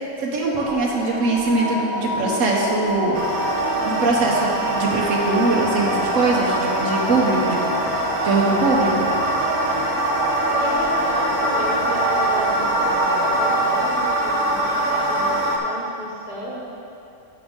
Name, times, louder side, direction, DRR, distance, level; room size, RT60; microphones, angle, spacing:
voice 1, 0.2-3.2 3.9-9.1, right 2 dB, 85° right, -2 dB, 1.3 m, -22 dB
sound 1, 0.5-13.7, left 1 dB, 35° left, 1.3 m, -29 dB
sound 2, 3.1-15.6, right 2 dB, 65° right, 1.2 m, -23 dB
voice 2, 10.5-16.6, equal, 35° right, -4 dB, 1.6 m, -33 dB
10.0 x 7.1 x 3.6 m, 2.7 s
omnidirectional pair, 1.3 m